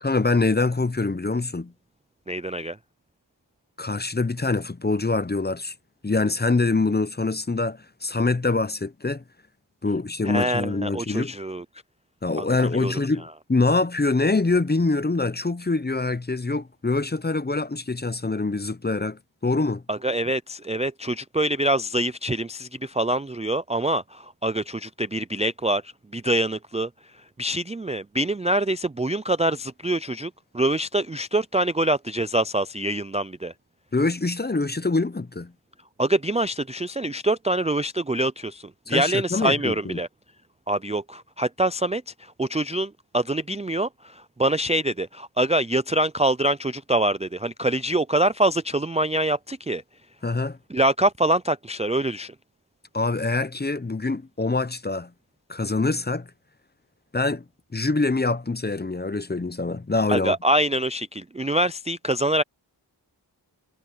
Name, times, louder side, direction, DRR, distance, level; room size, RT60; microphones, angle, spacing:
voice 1, 0.0-1.7 3.8-5.7 6.0-9.2 9.8-11.3 12.2-19.8 33.9-35.5 38.9-40.0 50.2-50.6 52.9-55.1 55.5-56.3 57.1-57.4 57.7-60.3, left 3 dB, 20° left, 0.7 m, -24 dB
voice 2, 2.3-2.8 10.2-11.6 12.4-12.5 12.7-12.9 19.9-26.9 27.4-33.5 36.0-40.1 40.7-49.8 50.7-52.3 60.1-62.4, right 1 dB, 15° right, 0.4 m, -25 dB
wide cardioid pair, 50°, 45 cm